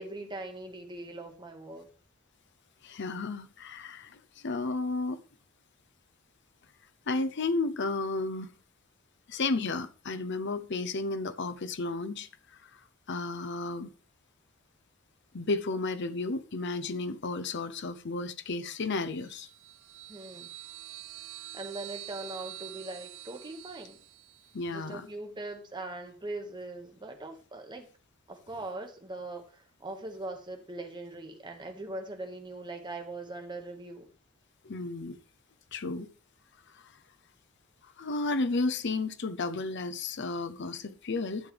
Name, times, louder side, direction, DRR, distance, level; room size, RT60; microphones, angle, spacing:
voice 1, 0.0-1.9 20.1-20.5 21.5-24.0 24.7-27.9 28.3-34.1, right 2 dB, 20° right, 1.7 m, -41 dB
voice 2, 2.8-5.2 7.1-8.5 9.3-12.7 13.1-13.9 15.3-19.5 24.5-25.1 34.6-35.2 35.7-36.1 36.7-36.9 38.0-41.5, left 3 dB, 55° left, 0.7 m, -33 dB
sound 1, 19.2-24.6, right 14 dB, 65° right, 0.7 m, -46 dB
12.0 x 7.9 x 3.4 m
head